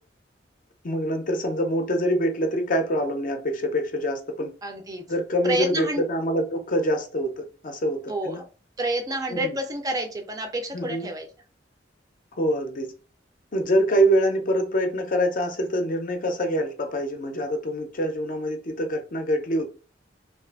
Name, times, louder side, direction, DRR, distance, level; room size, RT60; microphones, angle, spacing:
voice 1, 0.8-4.5 5.1-8.4 9.3-9.6 10.7-11.1 12.4-12.9 13.5-19.7, equal, 45° left, 0.5 m, -25 dB
voice 2, 4.6-5.0 5.4-6.0 8.1-8.3 8.8-11.3, right 1 dB, 20° right, 0.4 m, -28 dB
2.5 x 2.3 x 2.4 m
head